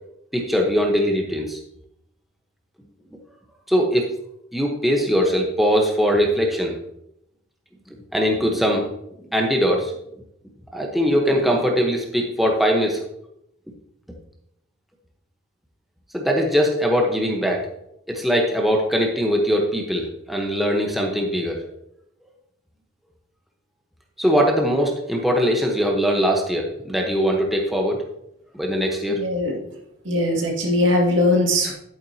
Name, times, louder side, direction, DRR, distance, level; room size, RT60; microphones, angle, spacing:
voice 1, 0.3-1.6 3.7-4.1 4.5-6.8 8.1-8.9 9.3-9.9 10.7-13.0 16.1-17.6 18.1-21.6 24.2-28.0 28.5-29.2, equal, ahead, 0 dB, 1.1 m, -21 dB
voice 2, 29.1-29.6 30.0-31.7, left 1 dB, 80° right, -1 dB, 2.2 m, -20 dB
11.0 x 9.0 x 2.8 m, 0.78 s
head